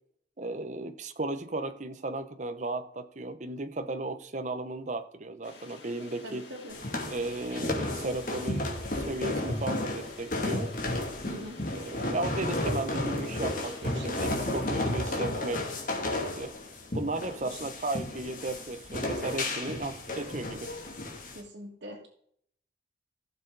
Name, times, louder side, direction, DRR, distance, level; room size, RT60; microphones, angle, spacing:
voice 1, 0.4-6.4 7.1-8.7 9.0-10.7 11.7-15.6 16.1-16.5 16.9-20.7, right 2 dB, 40° right, 10 dB, 0.8 m, -35 dB
sound 1, 5.4-14.7, left 3 dB, 85° left, 3.0 m, -50 dB
voice 2, 6.2-6.8 11.3-11.6 13.8-14.3 17.4-17.7 21.3-22.1, right 1 dB, 85° right, -5 dB, 2.1 m, -43 dB
sound 2, 6.7-21.4, left 1 dB, 50° left, 2.4 m, -33 dB
16.0 x 6.8 x 4.0 m, 0.65 s
head